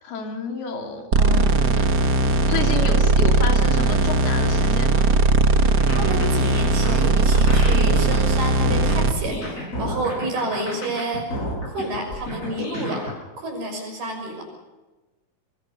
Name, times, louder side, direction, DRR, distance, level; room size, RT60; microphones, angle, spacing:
voice 1, 0.0-2.1 2.5-5.2, left 5 dB, 90° left, 3 dB, 4.8 m, -30 dB
sound 1, 1.1-9.1, right 3 dB, 55° right, 1.1 m, -18 dB
sound 2, 5.8-13.1, left 1 dB, 20° left, 5.1 m, -31 dB
voice 2, 6.0-11.3 11.7-13.1 13.4-14.4, right 1 dB, 85° right, 3 dB, 8.0 m, -29 dB
24.5 x 24.0 x 5.5 m, 1.1 s
omnidirectional pair, 4.3 m